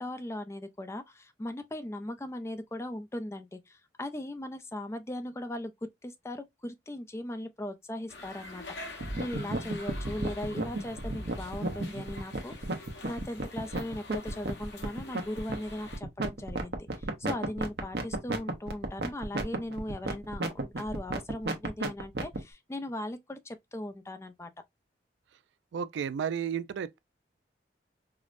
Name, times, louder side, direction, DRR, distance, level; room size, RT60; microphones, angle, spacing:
voice 1, 0.0-5.7 6.0-24.5, left 1 dB, 15° left, 0.4 m, -38 dB
sound 1, 8.1-16.0, left 2 dB, 90° left, 1.0 m, -46 dB
sound 2, 9.0-22.4, right 2 dB, 65° right, 0.8 m, -33 dB
voice 2, 25.7-27.0, right 7 dB, 90° right, 0.3 m, -32 dB
4.8 x 2.0 x 2.4 m
head